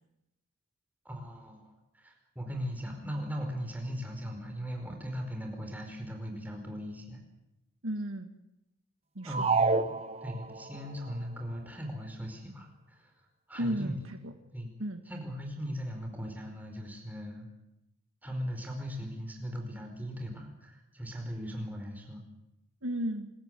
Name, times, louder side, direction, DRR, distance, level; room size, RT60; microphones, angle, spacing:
voice 1, 1.0-7.2 9.2-9.9 10.2-13.1 13.5-14.0 14.5-14.7 15.1-17.5 18.2-22.2, equal, 10° right, 2 dB, 4.8 m, -38 dB
voice 2, 7.8-8.3 9.2-9.5 13.6-14.3 14.8-15.0 22.8-23.3, equal, 70° right, 7 dB, 1.8 m, -34 dB
sound 1, 9.3-10.8, right 4 dB, 30° right, 1.0 m, -28 dB
26.0 x 14.5 x 9.3 m, 0.90 s
head